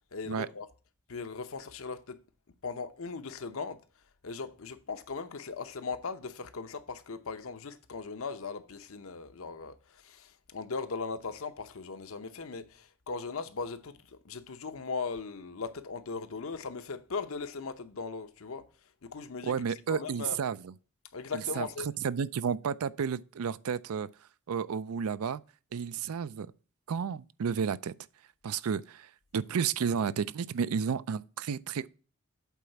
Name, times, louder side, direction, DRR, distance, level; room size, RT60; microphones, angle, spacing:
voice 1, 0.1-0.7 1.1-2.2 2.6-3.8 4.2-18.7 19.0-19.5 19.9-20.4 21.1-21.9, left 4 dB, 75° left, 0.8 m, -38 dB
voice 2, 19.4-20.7 21.3-21.7 22.0-24.1 24.5-25.4 25.7-26.5 26.9-27.9 28.4-31.9, right 6 dB, 85° right, 0.4 m, -32 dB
8.2 x 4.1 x 5.7 m
head